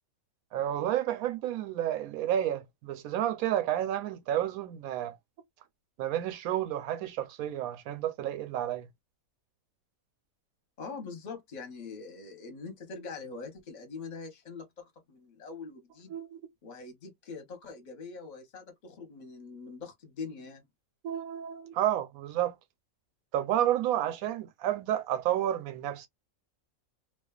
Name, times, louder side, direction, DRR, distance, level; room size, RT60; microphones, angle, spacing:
voice 1, 0.5-5.2 6.0-8.9 16.1-16.4 21.0-22.5 23.3-26.1, right 11 dB, 85° right, 1.0 m, -30 dB
voice 2, 10.8-16.1 16.6-20.7, left 4 dB, 40° left, 0.8 m, -43 dB
2.4 x 2.3 x 2.3 m
omnidirectional pair, 1.4 m